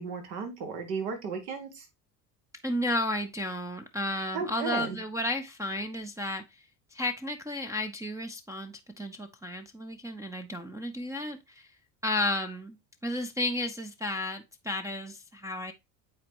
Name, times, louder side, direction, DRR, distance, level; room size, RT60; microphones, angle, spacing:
voice 1, 0.0-1.9 4.3-5.0, right 5 dB, 70° right, 1.9 m, -35 dB
voice 2, 2.6-6.4 6.9-11.7 12.0-15.7, left 1 dB, 5° right, 0.6 m, -33 dB
8.7 x 4.2 x 2.9 m
hypercardioid pair, 65°, 50 cm